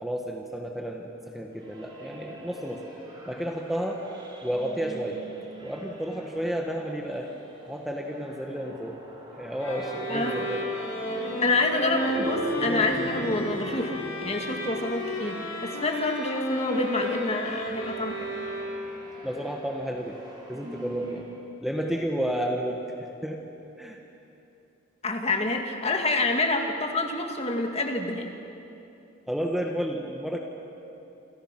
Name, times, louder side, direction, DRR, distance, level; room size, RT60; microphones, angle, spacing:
voice 1, 0.0-2.8 3.3-4.0 4.4-5.2 5.6-7.3 7.7-9.0 9.4-10.6 19.2-20.2 20.5-21.3 21.6-23.4 23.8-24.0 29.3-30.4, equal, ahead, 1 dB, 1.4 m, -31 dB
sound 1, 1.6-21.4, equal, 20° right, 3.6 m, -41 dB
sound 2, 9.6-19.0, equal, 85° left, 6.7 m, -32 dB
voice 2, 10.1-10.5 11.4-18.3 25.0-28.3, left 2 dB, 30° left, 3 dB, 2.1 m, -28 dB
28.5 x 26.5 x 6.0 m, 2.9 s
head